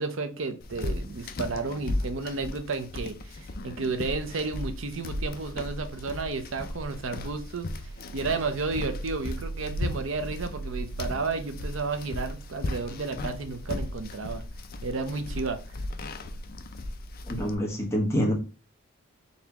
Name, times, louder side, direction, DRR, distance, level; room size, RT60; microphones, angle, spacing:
voice 1, 0.0-14.4 14.8-15.6, right 4 dB, 65° right, 0.6 m, -32 dB
sound 1, 0.6-17.6, left 1 dB, 45° left, 0.4 m, -36 dB
voice 2, 17.3-18.3, equal, 15° left, 1.2 m, -26 dB
4.1 x 3.4 x 2.9 m
head